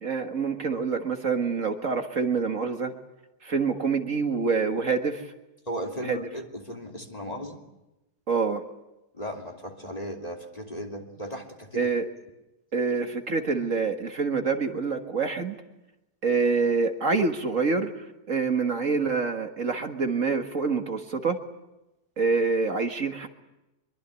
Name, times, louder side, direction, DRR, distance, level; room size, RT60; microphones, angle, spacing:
voice 1, 0.0-2.9 3.4-5.3 6.0-6.3 8.3-8.6 11.8-12.1 12.7-15.6 16.2-17.9 18.3-21.4 22.2-23.3, right 4 dB, 55° right, 5 dB, 2.0 m, -26 dB
voice 2, 5.7-7.6 9.1-11.9, equal, 25° left, 2 dB, 2.9 m, -36 dB
24.5 x 23.0 x 8.3 m, 0.96 s
omnidirectional pair, 1.7 m